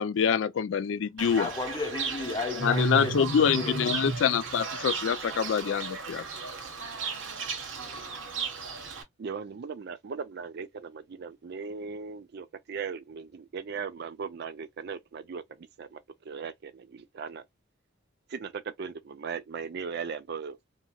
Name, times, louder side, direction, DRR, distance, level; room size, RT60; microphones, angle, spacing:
voice 1, 0.0-1.5 2.6-6.2, left 7 dB, 75° left, 0.4 m, -26 dB
Fowl / Bird, 1.2-9.0, right 4 dB, 85° right, 0.8 m, -34 dB
voice 2, 1.3-3.8, left 3 dB, 20° left, 0.8 m, -34 dB
voice 3, 9.2-15.4 15.8-16.0 16.3-17.4 18.3-20.6, right 6 dB, 55° right, 0.4 m, -38 dB
2.8 x 2.6 x 2.2 m
head